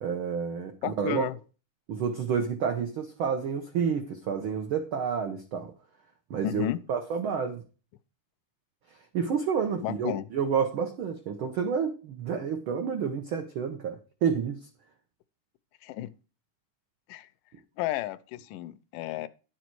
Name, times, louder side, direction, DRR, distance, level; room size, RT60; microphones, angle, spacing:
voice 1, 0.0-1.3 1.9-5.7 6.3-7.6 9.1-14.6, right 6 dB, 90° right, 1.1 m, -29 dB
voice 2, 0.8-1.4 6.4-6.8 9.8-10.2 15.8-16.1 17.1-17.3 17.8-19.3, left 13 dB, 90° left, 2.2 m, -32 dB
10.5 x 7.0 x 4.5 m
omnidirectional pair, 3.6 m